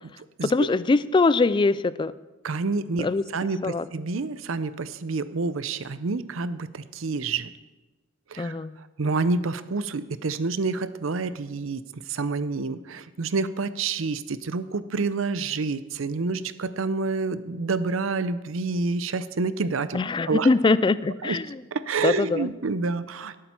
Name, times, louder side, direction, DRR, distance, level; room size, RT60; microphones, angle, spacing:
voice 1, 0.4-2.1 3.0-3.2 3.6-3.8 8.4-8.8 19.9-21.5 22.0-22.5, left 3 dB, 25° left, 16 dB, 0.3 m, -22 dB
voice 2, 2.4-3.1 3.3-7.5 8.3-20.0 20.3-20.5 21.2-21.4 21.7-23.4, right 4 dB, 70° right, 14 dB, 0.6 m, -28 dB
18.0 x 8.7 x 4.4 m, 1.2 s
head